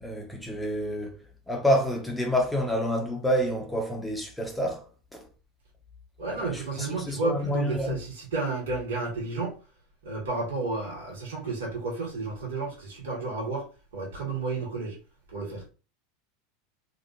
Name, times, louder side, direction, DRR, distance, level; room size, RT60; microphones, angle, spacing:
voice 1, 0.0-1.2 1.5-5.3 6.3-8.0, equal, 5° left, 0.8 m, -28 dB
voice 2, 6.2-9.5 10.0-13.6 13.9-15.0 15.3-15.6, right 3 dB, 75° right, 1.4 m, -31 dB
2.8 x 2.4 x 2.6 m
hypercardioid pair, 85°, 0 cm